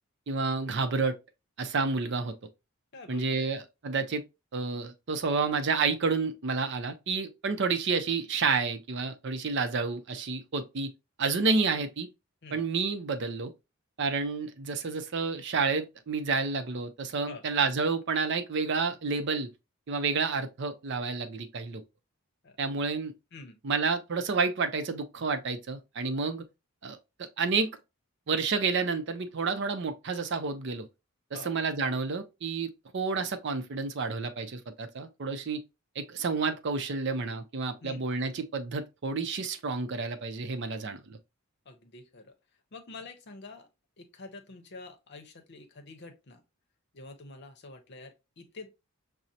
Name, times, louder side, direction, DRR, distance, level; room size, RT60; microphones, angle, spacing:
voice 1, 0.3-1.2 1.6-2.3 3.1-4.2 4.5-10.9 11.2-12.1 12.5-13.5 14.0-19.5 19.9-21.8 22.6-23.1 23.6-26.4 26.8-27.7 28.3-30.9 31.3-35.6 36.0-41.2, right 4 dB, 55° right, 0.5 m, -30 dB
voice 2, 2.9-3.5 12.4-12.6 17.3-17.4 22.4-22.6 23.3-23.6 31.3-31.5 37.8-38.0 41.7-42.3 42.7-43.7 44.0-46.4 46.9-48.7, left 3 dB, 50° left, 0.7 m, -47 dB
6.1 x 2.0 x 2.7 m
head